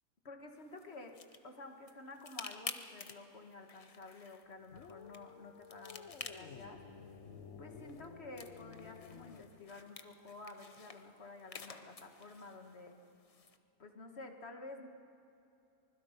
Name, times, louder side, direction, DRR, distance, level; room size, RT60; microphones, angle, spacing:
voice 1, 0.3-1.2 1.4-6.8 7.6-12.9 13.8-14.9, left 2 dB, 45° left, 4 dB, 1.8 m, -51 dB
sound 1, 0.6-13.6, left 4 dB, 30° left, 0.7 m, -52 dB
sound 2, 4.7-9.5, left 6 dB, 65° left, 1.4 m, -53 dB
25.0 x 20.5 x 5.1 m, 2.8 s
omnidirectional pair, 1.5 m